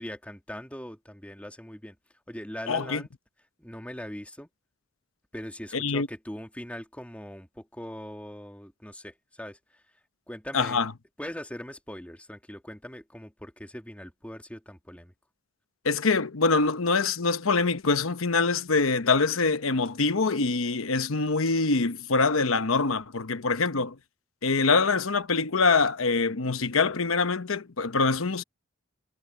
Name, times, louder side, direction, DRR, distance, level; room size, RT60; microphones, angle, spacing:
voice 1, 0.0-2.0 2.3-3.1 3.6-4.5 5.3-9.8 10.3-10.8 11.2-15.1, equal, 5° left, 2.3 m, -41 dB
voice 2, 2.7-3.0 5.7-6.1 10.5-10.9 15.8-24.0 24.4-28.4, left 4 dB, 85° left, 1.0 m, -24 dB
head